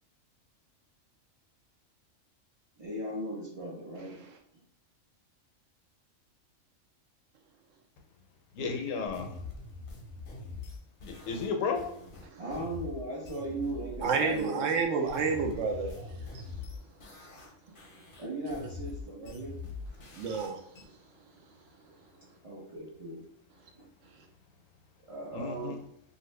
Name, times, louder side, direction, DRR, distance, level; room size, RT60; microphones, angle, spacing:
voice 1, 2.8-4.1 4.5-4.6 12.4-14.6 14.9-15.1 15.9-16.3 18.2-19.6 22.4-23.2 23.7-23.9 25.1-25.8, right 1 dB, 35° right, 0.6 m, -38 dB
voice 2, 8.5-9.4 11.1-11.9 25.3-25.8, left 5 dB, 75° left, 0.9 m, -33 dB
sound 1, 9.1-14.5 14.8-17.5 17.8-20.8, left 4 dB, 55° left, 0.7 m, -44 dB
voice 3, 14.0-15.9 20.1-20.6, right 5 dB, 70° right, 0.9 m, -29 dB
2.7 x 2.5 x 3.1 m
omnidirectional pair, 1.4 m